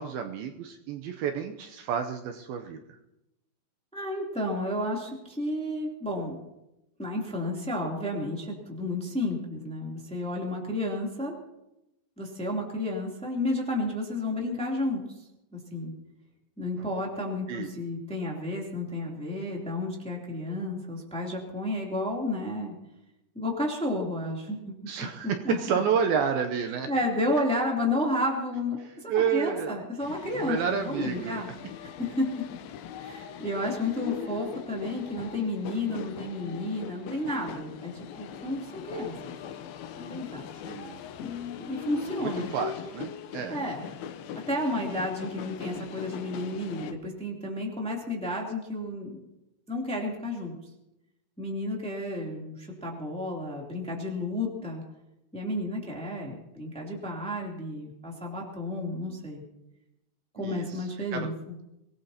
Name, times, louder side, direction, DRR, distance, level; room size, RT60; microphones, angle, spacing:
voice 1, 0.0-2.8 16.8-16.9 17.5-17.7 24.9-26.9 29.1-29.8 30.3-31.4 40.6-41.0 41.6-41.7 42.2-43.6 60.4-61.3, right 7 dB, 80° right, 5 dB, 2.4 m, -30 dB
voice 2, 3.9-6.4 7.0-11.3 12.2-15.0 15.5-15.9 16.6-22.7 23.3-24.7 25.2-25.6 26.9-31.5 31.8-32.3 33.0-37.9 38.2-39.1 40.0-40.5 41.2-42.5 43.5-43.8 44.5-49.2 49.7-50.6 51.4-54.8 55.3-59.4 60.4-61.3, left 1 dB, ahead, -2 dB, 2.1 m, -31 dB
sound 1, 30.0-46.9, left 8 dB, 75° left, 2.6 m, -40 dB
24.5 x 18.0 x 2.9 m, 0.91 s
omnidirectional pair, 4.7 m